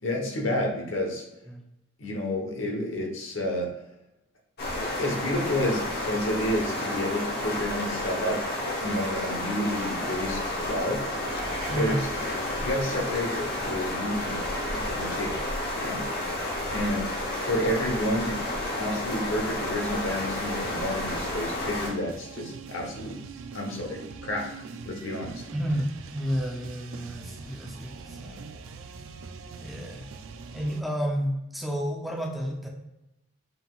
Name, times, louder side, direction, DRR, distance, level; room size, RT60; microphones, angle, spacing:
voice 1, 0.0-1.2 2.0-3.7 4.7-8.5 8.8-11.1 11.7-11.9 12.5-15.4 15.7-16.1 16.7-18.4 18.7-23.2 23.5-24.5 24.8-25.4, left 1 dB, 75° left, 1 dB, 1.0 m, -30 dB
sound 1, 4.6-21.9, left 1 dB, 50° left, 1.0 m, -31 dB
sound 2, 11.2-14.9, right 3 dB, 25° right, 1.4 m, -44 dB
sound 3, 19.9-30.8, right 4 dB, 80° right, 0.4 m, -43 dB
voice 2, 25.5-28.5 29.6-30.1 30.5-32.7, equal, ahead, 0 dB, 0.4 m, -31 dB
5.5 x 3.8 x 2.4 m, 0.91 s
head